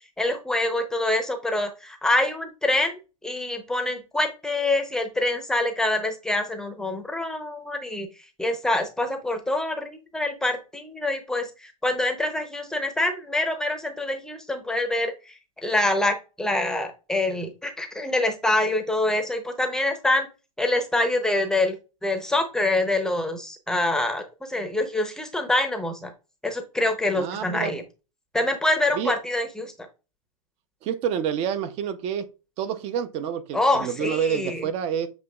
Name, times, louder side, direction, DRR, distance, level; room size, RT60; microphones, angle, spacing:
voice 1, 0.2-8.1 8.4-15.3 15.6-20.3 20.6-21.8 22.0-26.1 26.4-27.8 28.3-29.9 33.5-34.7, left 2 dB, 5° left, 0.7 m, -25 dB
voice 2, 27.1-27.7 28.9-29.1 30.8-32.3 32.6-35.1, right 8 dB, 35° right, 0.6 m, -28 dB
7.2 x 2.9 x 2.3 m
hypercardioid pair, 115°, 18 cm